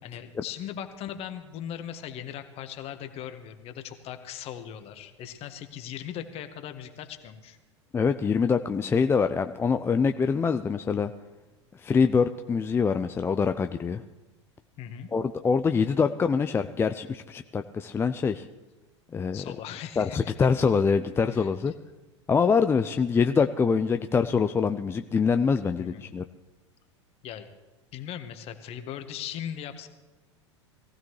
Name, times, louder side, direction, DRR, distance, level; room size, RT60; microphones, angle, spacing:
voice 1, 0.0-7.6 14.8-15.1 19.3-20.5 21.3-21.7 25.8-26.1 27.2-27.5 27.9-29.9, left 9 dB, 40° left, 8 dB, 1.4 m, -39 dB
voice 2, 7.9-11.1 11.8-14.0 15.1-18.5 19.1-19.4 20.0-21.7 22.3-26.2, left 5 dB, 15° left, 8 dB, 0.4 m, -24 dB
22.0 x 15.5 x 3.2 m, 1.1 s
hypercardioid pair, 90°, 15 cm